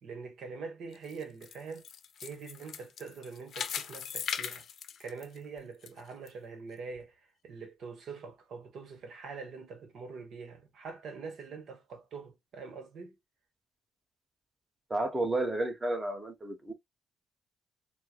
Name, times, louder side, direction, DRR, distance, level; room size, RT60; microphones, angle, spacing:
voice 1, 0.0-1.9 2.2-4.6 5.0-7.1 7.4-13.1, right 5 dB, 70° right, 1.1 m, -44 dB
sound 1, 0.9-5.9 6.3-6.4 7.0-7.1, left 8 dB, 60° left, 0.6 m, -39 dB
voice 2, 14.9-16.7, right 2 dB, 20° right, 1.0 m, -31 dB
4.4 x 2.1 x 2.2 m
cardioid pair, 90°, 0 cm